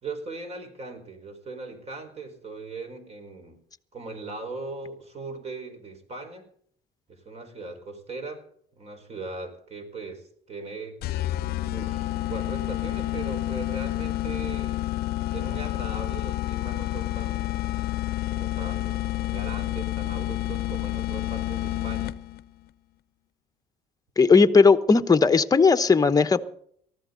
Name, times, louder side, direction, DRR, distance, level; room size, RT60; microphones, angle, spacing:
voice 1, 0.0-3.6 3.9-6.5 7.1-8.5 8.7-11.0 11.6-14.9 15.3-17.5 18.3-22.2, right 3 dB, 40° right, 6 dB, 4.7 m, -39 dB
sound 1, 11.0-22.4, left 15 dB, 65° left, 0.7 m, -29 dB
voice 2, 24.2-26.4, left 4 dB, 20° left, 10 dB, 1.0 m, -17 dB
19.0 x 14.5 x 3.9 m, 0.63 s
cardioid pair, 110°, 17 cm